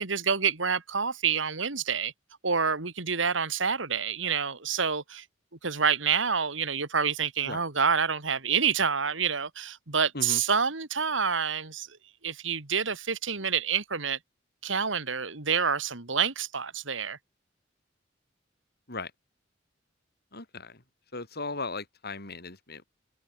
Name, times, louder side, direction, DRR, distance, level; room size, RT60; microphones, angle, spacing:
voice 1, 0.0-2.1 2.4-5.2 5.6-11.9 12.2-14.2 14.6-17.2, right 6 dB, 75° right, 2.4 m, -28 dB
voice 2, 20.3-20.8 21.1-22.8, left 3 dB, 55° left, 6.9 m, -37 dB
head